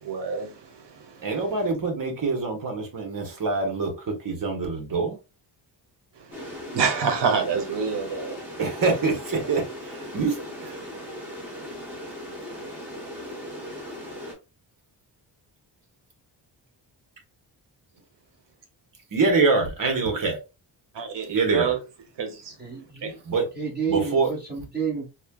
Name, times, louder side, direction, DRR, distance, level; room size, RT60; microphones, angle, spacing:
voice 1, 0.0-1.2 6.2-8.4 20.9-21.8 22.2-22.5 23.0-23.1, right 5 dB, 75° right, 0.9 m, -28 dB
voice 2, 1.2-5.2 8.6-10.8 19.1-20.4 21.3-21.8 23.2-23.5 23.9-24.3, right 4 dB, 50° right, 1.2 m, -25 dB
sound 1, 6.3-14.3, equal, 5° right, 1.1 m, -38 dB
voice 3, 22.6-23.1 23.5-25.1, right 7 dB, 25° right, 1.7 m, -29 dB
4.1 x 2.2 x 2.3 m
wide cardioid pair, 130°, 42 cm